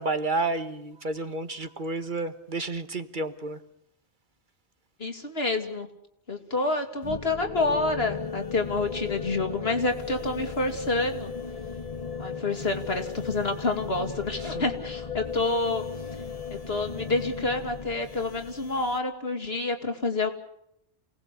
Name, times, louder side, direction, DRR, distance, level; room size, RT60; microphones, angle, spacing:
voice 1, 0.0-3.6 14.4-14.6, right 3 dB, 45° right, 10 dB, 1.4 m, -31 dB
voice 2, 5.0-5.9 6.3-11.3 12.2-15.8 16.7-20.3, left 3 dB, 60° left, 5 dB, 3.0 m, -28 dB
sound 1, 7.0-19.0, left 5 dB, 35° left, 1.1 m, -36 dB
28.5 x 18.5 x 8.4 m, 0.77 s
omnidirectional pair, 1.2 m